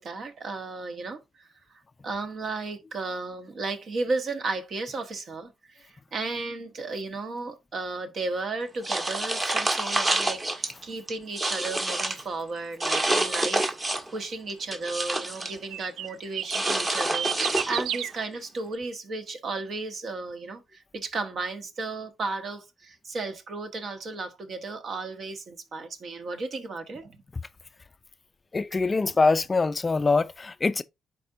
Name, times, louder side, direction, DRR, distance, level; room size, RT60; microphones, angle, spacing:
voice 1, 0.0-27.2, right 3 dB, 55° right, 1.4 m, -34 dB
sound 1, 8.8-10.7 11.1-12.2 12.8-14.2 14.5-15.6 16.5-18.0, right 1 dB, 25° right, 1.4 m, -27 dB
sound 2, 12.9-13.1 15.4-18.1, right 10 dB, 80° right, 0.3 m, -32 dB
voice 2, 28.5-30.8, left 3 dB, 30° left, 0.4 m, -23 dB
10.5 x 4.3 x 2.6 m
cardioid pair, 90°, 0 cm